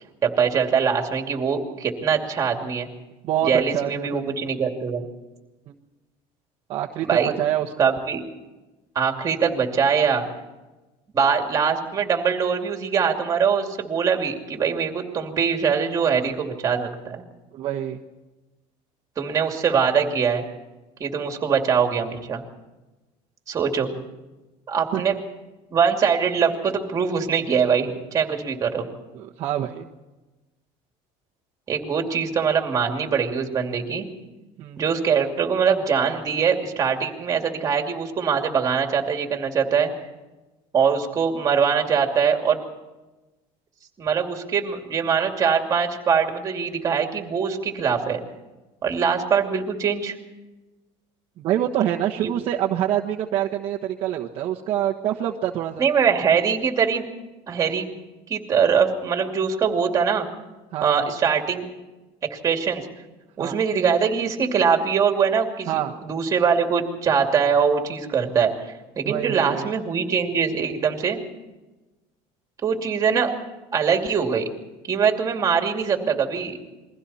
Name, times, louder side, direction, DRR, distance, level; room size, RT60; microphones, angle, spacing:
voice 1, 0.2-2.9 3.4-5.1 7.0-7.3 7.8-8.2 8.9-10.3 11.1-17.2 19.2-20.4 21.0-22.4 23.5-23.9 24.7-25.1 25.7-28.9 31.7-34.1 34.8-39.9 40.7-42.6 44.0-48.2 48.8-50.2 52.2-52.3 55.8-57.1 57.5-57.9 58.3-60.3 60.8-61.7 62.3-62.8 63.4-65.7 66.0-68.5 69.0-71.2 72.6-73.3 73.7-74.5 74.9-76.6, right 6 dB, 25° right, 4 dB, 2.7 m, -22 dB
voice 2, 3.2-4.2 5.7-5.8 6.7-7.9 17.5-18.0 24.9-25.0 29.1-29.8 34.6-34.8 51.4-55.8 60.7-61.1 63.4-63.6 65.7-65.9 69.0-69.7, right 11 dB, 45° right, -2 dB, 1.3 m, -26 dB
29.0 x 22.5 x 4.3 m, 1.1 s
cardioid pair, 170°, 13 cm